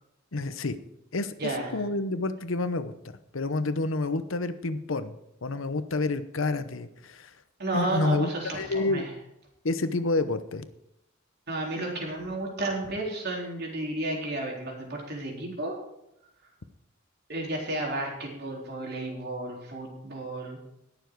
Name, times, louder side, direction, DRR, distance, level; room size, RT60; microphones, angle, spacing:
voice 1, 0.3-0.8 1.1-2.9 3.3-5.1 5.4-7.3 7.7-9.1 9.6-10.6, left 2 dB, 75° left, 12 dB, 0.9 m, -29 dB
voice 2, 1.4-1.7 7.6-9.1 11.5-15.8 17.3-20.6, right 1 dB, 55° right, -1 dB, 3.8 m, -32 dB
19.5 x 7.1 x 4.7 m, 0.84 s
head